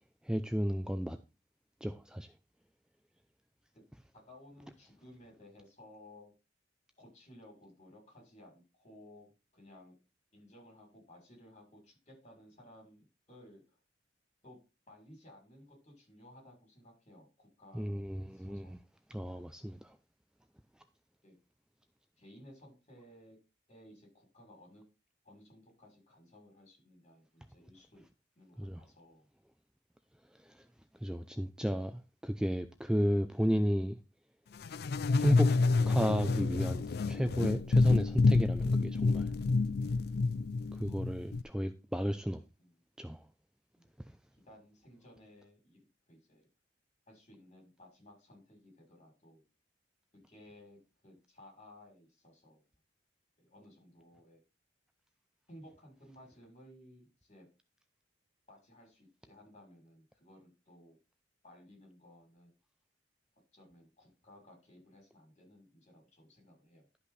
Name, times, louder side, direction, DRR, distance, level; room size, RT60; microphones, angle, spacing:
voice 1, 0.2-1.2 1.8-2.3 17.7-18.8 19.1-20.0 28.6-28.8 30.4-30.6 31.0-34.0 35.2-35.5 35.9-39.3 40.7-42.4 43.0-43.2, equal, 5° right, 0.5 m, -33 dB
voice 2, 4.1-6.3 7.0-9.9 10.3-13.6 14.4-14.6 14.9-18.8 21.2-21.3 22.2-23.4 23.7-24.8 25.2-28.0 28.3-29.3 33.1-33.2 40.7-40.9 42.6-42.8 43.8-43.9 44.4-45.8 46.1-46.5 47.1-49.4 50.3-52.6 53.4-54.4 55.5-57.5 58.5-61.0 61.4-62.6 63.5-66.9, left 1 dB, 40° left, 6.3 m, -58 dB
sound 1, 34.6-41.4, left 3 dB, 60° left, 0.5 m, -28 dB
12.0 x 5.6 x 4.1 m
head